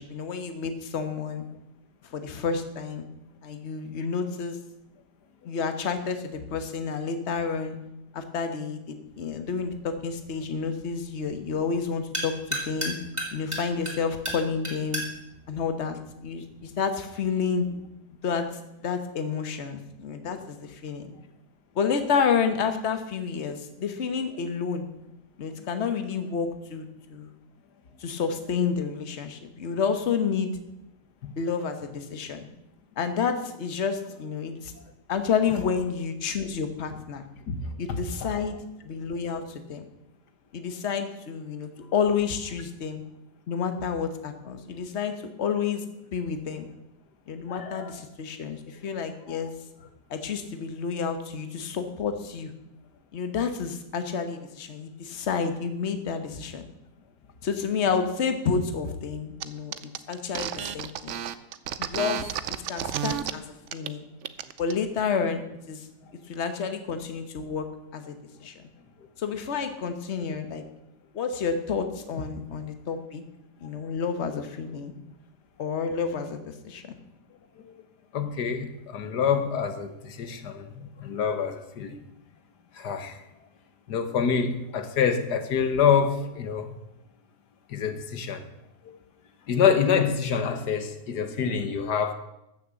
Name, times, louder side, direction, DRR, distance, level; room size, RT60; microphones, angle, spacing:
voice 1, 0.0-1.4 2.1-3.0 3.4-4.6 5.4-7.8 8.1-12.9 13.3-15.0 15.5-17.7 18.2-18.5 18.8-21.1 21.7-24.9 25.4-26.8 27.1-27.3 28.0-30.5 31.4-32.5 33.0-34.7 35.1-37.2 37.8-38.6 38.8-39.9 40.5-43.0 43.5-45.8 46.1-46.7 47.3-49.5 50.1-52.5 53.1-56.6 57.4-59.7 60.1-61.1 61.8-62.4 62.7-63.4 63.7-64.1 64.6-65.4 65.7-65.9 66.3-68.5 69.2-70.6 71.1-73.2 73.6-74.9 75.6-77.0, left 6 dB, 45° left, 1.4 m, -30 dB
sound 1, 9.1-16.7, right 1 dB, 20° right, 2.7 m, -37 dB
voice 2, 47.5-47.9 49.3-49.4 77.7-77.8 78.1-82.0 82.8-83.2 83.9-86.7 87.7-88.4 89.5-92.1, left 7 dB, 80° left, 1.7 m, -26 dB
sound 2, 59.4-59.5 59.7-63.3 63.7-63.9 64.2-64.7, right 10 dB, 60° right, 0.8 m, -31 dB
13.5 x 6.6 x 7.6 m
omnidirectional pair, 1.7 m